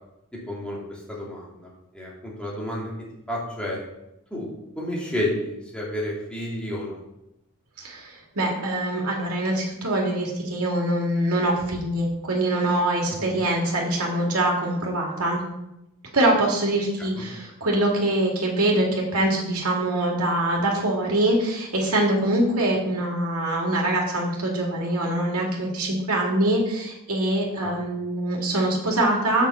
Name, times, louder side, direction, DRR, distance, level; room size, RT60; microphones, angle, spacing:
voice 1, 0.3-2.9 3.3-3.8 4.3-4.5 4.7-7.0 13.1-13.3 17.0-17.2 27.6-28.0, left 1 dB, 5° left, -6 dB, 2.9 m, -31 dB
voice 2, 7.8-15.4 16.1-29.5, right 1 dB, 80° right, -1 dB, 2.3 m, -24 dB
6.6 x 6.1 x 6.9 m, 0.86 s
head